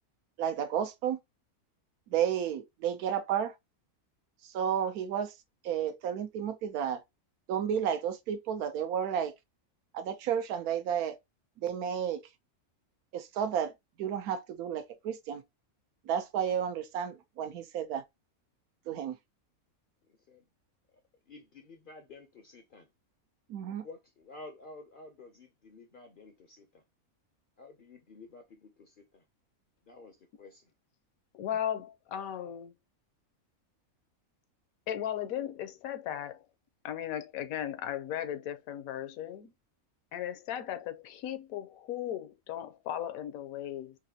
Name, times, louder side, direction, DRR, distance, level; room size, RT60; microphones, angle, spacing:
voice 1, 0.4-1.2 2.1-3.5 4.4-5.3 5.6-7.0 7.5-9.3 9.9-11.2 11.6-12.3 13.1-13.7 14.0-15.4 16.1-18.0 18.9-19.2 23.5-23.8, right 8 dB, 90° right, 1.2 m, -32 dB
voice 2, 20.1-20.5 21.3-22.9 23.7-26.8 27.6-29.2 29.8-30.7, left 3 dB, 60° left, 0.5 m, -51 dB
voice 3, 31.3-32.7 34.9-36.4 36.8-39.5 40.1-44.0, left 10 dB, 75° left, 1.0 m, -36 dB
4.1 x 2.5 x 2.7 m
omnidirectional pair, 1.5 m